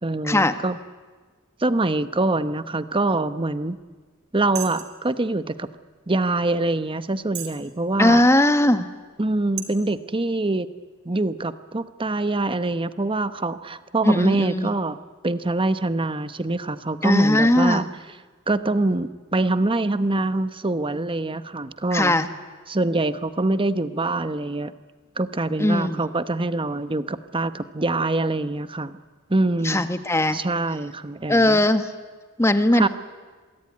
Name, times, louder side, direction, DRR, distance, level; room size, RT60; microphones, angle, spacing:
voice 1, 0.0-0.8 1.6-3.8 4.3-5.7 6.1-8.2 9.2-10.7 11.0-15.0 15.2-17.9 18.5-22.1 22.7-24.7 25.2-29.0 29.3-29.8 30.3-31.6 32.7-32.9, right 2 dB, 25° right, 12 dB, 1.0 m, -24 dB
sound 1, 3.8-3.9 4.5-5.0 5.7-5.8 6.4-6.5 7.3-7.6 8.2-8.3 9.0-9.2 9.6-9.7, right 11 dB, 50° right, 3.3 m, -34 dB
voice 2, 8.0-8.9 14.0-14.7 17.0-17.8 21.9-22.3 25.6-26.0 29.6-30.4 31.3-31.9 32.4-32.9, left 1 dB, 15° left, 9 dB, 1.4 m, -19 dB
26.0 x 23.0 x 9.8 m, 1.4 s
head